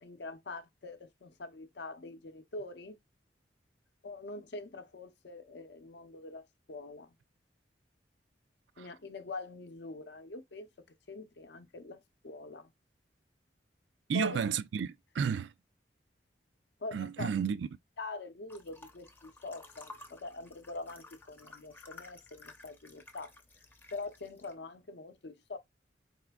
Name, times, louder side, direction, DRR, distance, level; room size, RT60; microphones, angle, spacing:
voice 1, 0.0-3.0 4.0-7.1 8.8-10.7 11.1-12.7 14.1-14.4 16.8-17.3 18.0-23.3 23.9-25.6, left 3 dB, 65° left, 0.6 m, -44 dB
voice 2, 14.1-15.5 16.9-17.7, right 7 dB, 75° right, 0.3 m, -32 dB
sound 1, 18.5-24.5, left 3 dB, 10° left, 0.5 m, -54 dB
4.1 x 3.7 x 2.2 m
head